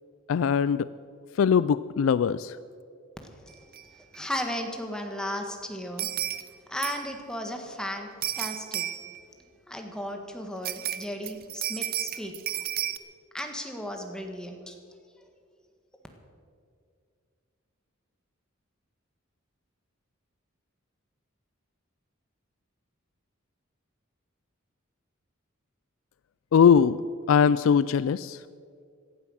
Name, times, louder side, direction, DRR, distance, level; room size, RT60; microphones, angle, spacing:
voice 1, 0.3-0.9 1.3-2.6 26.5-27.0 27.3-28.4, left 7 dB, 70° left, 16 dB, 0.3 m, -21 dB
voice 2, 3.2-6.4 6.7-8.9 9.7-12.6 13.3-14.7, equal, 5° left, 3 dB, 1.6 m, -35 dB
sound 1, 3.7-3.8 4.1-4.2 6.0-6.5 6.8-7.2 8.2-9.2 10.6-13.0, right 11 dB, 45° right, 0.7 m, -32 dB
17.0 x 12.0 x 6.4 m, 2.3 s
head